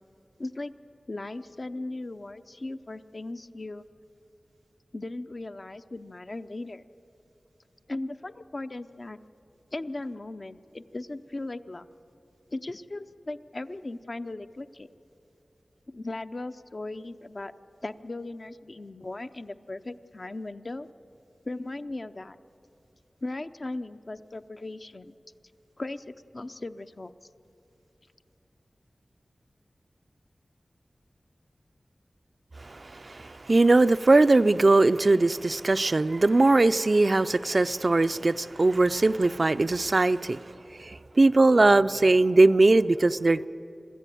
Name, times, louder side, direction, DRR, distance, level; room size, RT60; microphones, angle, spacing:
voice 1, 0.4-0.7 1.1-3.9 4.9-6.8 7.9-9.2 9.7-11.9 12.5-14.9 15.9-17.5 17.8-20.9 21.4-22.4 23.2-25.1 25.8-27.1, left 2 dB, 45° left, 10 dB, 0.7 m, -37 dB
voice 2, 32.6-40.4 40.8-43.5, right 2 dB, 45° right, 13 dB, 0.4 m, -21 dB
26.0 x 13.5 x 9.2 m, 2.9 s
wide cardioid pair, 70°, 0 cm